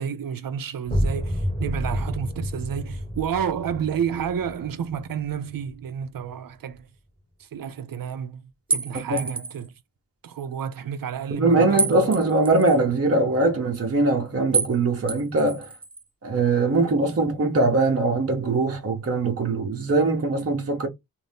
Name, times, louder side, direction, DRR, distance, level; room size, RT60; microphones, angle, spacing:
voice 1, 0.0-6.9 7.5-8.4 8.7-9.7 10.2-12.1, right 8 dB, 75° right, 0.6 m, -30 dB
sound 1, 0.8-6.4, equal, 20° left, 1.6 m, -30 dB
sound 2, 8.7-9.7 11.8-12.8 14.5-14.8 15.1-16.0, right 4 dB, 15° right, 0.4 m, -28 dB
voice 2, 11.3-15.7 16.2-20.9, right 3 dB, 45° right, 0.9 m, -22 dB
2.6 x 2.6 x 3.5 m
wide cardioid pair, 135°, 34 cm